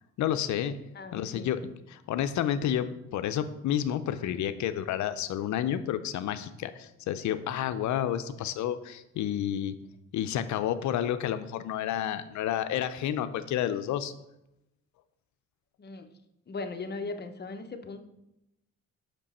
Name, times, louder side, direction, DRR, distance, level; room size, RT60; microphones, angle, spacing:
voice 1, 0.2-0.8 1.1-1.6 1.9-9.8 10.1-14.1, left 10 dB, 70° left, 11 dB, 0.5 m, -30 dB
voice 2, 0.9-1.5 15.8-16.1 16.5-18.0, left 3 dB, 35° left, 7 dB, 0.8 m, -38 dB
5.9 x 5.2 x 4.2 m, 0.88 s
cardioid pair, 90°, 30 cm